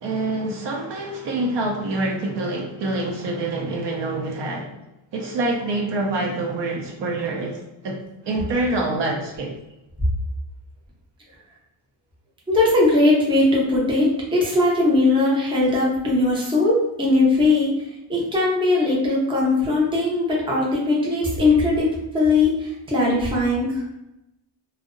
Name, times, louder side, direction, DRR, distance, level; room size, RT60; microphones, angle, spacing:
voice 1, 0.0-4.8 5.1-9.6, right 2 dB, 60° right, 1 dB, 0.5 m, -26 dB
voice 2, 12.5-23.8, left 2 dB, 10° right, -4 dB, 0.5 m, -20 dB
2.5 x 2.0 x 2.4 m, 0.91 s
wide cardioid pair, 135°, 48 cm